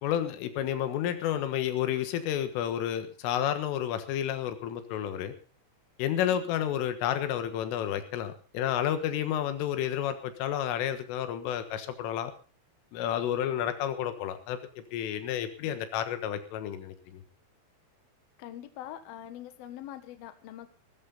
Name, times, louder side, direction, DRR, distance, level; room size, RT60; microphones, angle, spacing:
voice 1, 0.0-5.3 6.0-12.3 12.9-14.6 14.9-17.2, left 10 dB, 85° left, 9 dB, 4.0 m, -31 dB
voice 2, 18.4-20.7, left 12 dB, 65° left, 9 dB, 2.8 m, -43 dB
18.0 x 14.0 x 4.1 m, 0.37 s
omnidirectional pair, 5.6 m